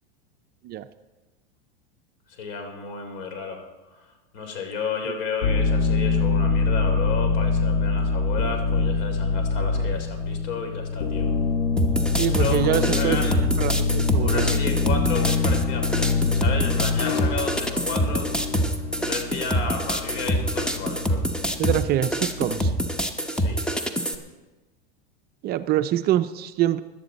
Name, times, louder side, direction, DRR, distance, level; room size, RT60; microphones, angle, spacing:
voice 1, 2.3-3.6 3.9-11.3 12.3-13.4 14.2-18.3 19.0-21.2 23.3-23.6, left 5 dB, 65° left, 4 dB, 3.2 m, -32 dB
sound 1, 5.4-22.8, left 4 dB, 80° left, 1.9 m, -25 dB
sound 2, 11.8-24.1, equal, 5° left, 0.9 m, -26 dB
voice 2, 12.2-14.6 21.6-22.7 25.4-26.8, right 12 dB, 30° right, 11 dB, 0.4 m, -25 dB
17.0 x 11.5 x 4.1 m, 1.2 s
hypercardioid pair, 115°, 30 cm